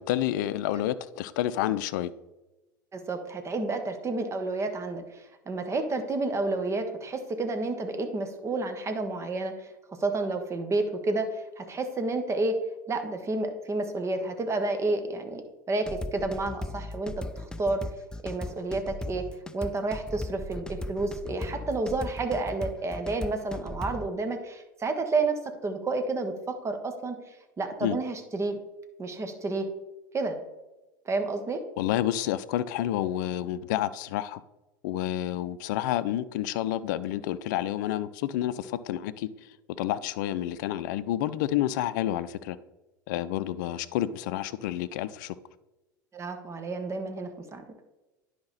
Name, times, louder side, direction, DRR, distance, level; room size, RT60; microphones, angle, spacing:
voice 1, 0.0-2.1 27.8-28.0 31.8-34.4 34.8-39.3 39.8-42.6 43.1-45.4, left 12 dB, 65° left, 15 dB, 0.5 m, -29 dB
voice 2, 2.9-9.7 10.0-12.6 12.9-15.4 15.7-17.8 18.2-19.3 19.5-27.2 27.6-28.6 29.0-29.7 30.1-30.4 31.0-31.6 46.1-47.6, right 3 dB, 25° right, 7 dB, 1.4 m, -30 dB
sound 1, 15.9-24.1, left 1 dB, 5° left, 0.4 m, -37 dB
10.5 x 5.0 x 4.1 m, 1.0 s
hypercardioid pair, 80°, 11 cm